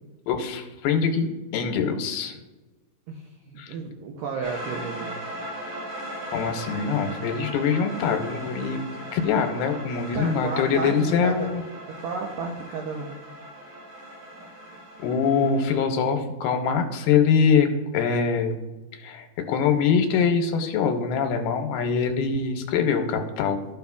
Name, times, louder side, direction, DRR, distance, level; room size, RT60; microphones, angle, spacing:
voice 1, 0.3-2.4 3.6-3.7 6.3-8.8 9.1-11.6 15.0-17.7 17.9-18.6 18.9-23.7, left 6 dB, 80° left, 4 dB, 2.5 m, -23 dB
voice 2, 3.1-5.2 10.1-11.5 11.9-13.1, right 5 dB, 90° right, 0 dB, 1.9 m, -32 dB
sound 1, 4.4-15.8, right 1 dB, 70° right, 4.9 m, -38 dB
14.5 x 5.5 x 2.3 m, 1.2 s
omnidirectional pair, 4.7 m